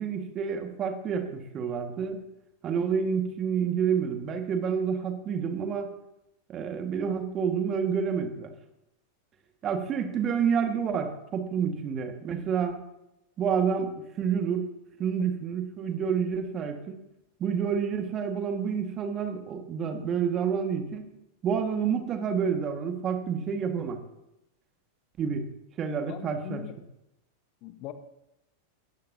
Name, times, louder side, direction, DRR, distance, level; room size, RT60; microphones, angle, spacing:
voice 1, 0.0-2.2 2.6-5.9 6.5-8.5 9.6-12.8 13.4-14.6 15.0-17.0 17.4-21.1 21.4-24.0 25.2-25.5 25.8-26.6, right 7 dB, 30° right, 6 dB, 1.7 m, -29 dB
voice 2, 26.1-26.7 27.6-27.9, left 14 dB, 40° left, 10 dB, 1.1 m, -40 dB
19.5 x 14.0 x 2.8 m, 0.88 s
figure-of-eight pair, 90°, 0 cm